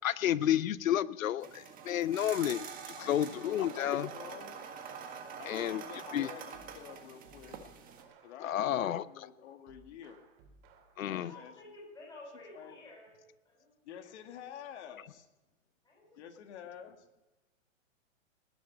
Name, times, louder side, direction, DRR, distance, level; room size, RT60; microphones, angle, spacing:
voice 1, 0.0-4.1 5.5-5.8 6.1-6.3 8.4-9.0 11.0-11.3, left 11 dB, 85° left, 18 dB, 0.8 m, -31 dB
sound 1, 1.4-8.0, right 6 dB, 20° right, 1.7 m, -46 dB
voice 2, 3.0-4.6 5.3-7.6 8.2-10.2 11.0-11.6 12.5-12.8 13.8-15.3 16.2-17.1, left 9 dB, 55° left, 6 dB, 2.1 m, -49 dB
sound 2, 4.8-5.4 5.8-9.2 9.7-11.2, right 5 dB, 45° right, 3.0 m, -62 dB
voice 3, 11.2-13.1 13.5-13.7 15.8-16.2, left 2 dB, 10° left, -3 dB, 5.6 m, -52 dB
19.0 x 7.4 x 8.3 m, 1.1 s
hypercardioid pair, 145°, 39 cm